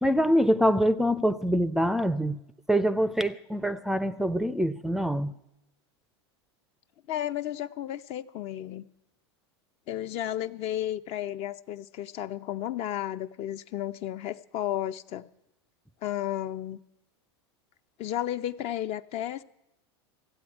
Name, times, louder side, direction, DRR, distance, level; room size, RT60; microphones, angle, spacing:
voice 1, 0.0-2.4 2.7-5.3, equal, 5° right, 0.4 m, -25 dB
voice 2, 7.1-8.8 9.9-15.3 16.0-16.8 18.0-19.4, left 12 dB, 45° left, 0.6 m, -33 dB
14.5 x 8.0 x 9.7 m
hypercardioid pair, 115°, 14 cm